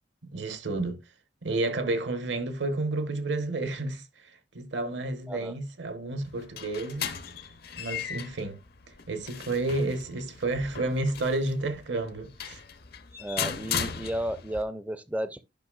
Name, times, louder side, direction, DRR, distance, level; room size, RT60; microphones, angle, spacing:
voice 1, 0.2-1.0 1.4-7.1 7.8-8.6 8.9-12.6, right 2 dB, 70° right, 1.2 m, -31 dB
sound 1, 6.2-14.6, left 7 dB, 60° left, 0.8 m, -37 dB
voice 2, 13.2-15.4, right 1 dB, 10° right, 0.5 m, -33 dB
10.5 x 5.8 x 2.4 m
head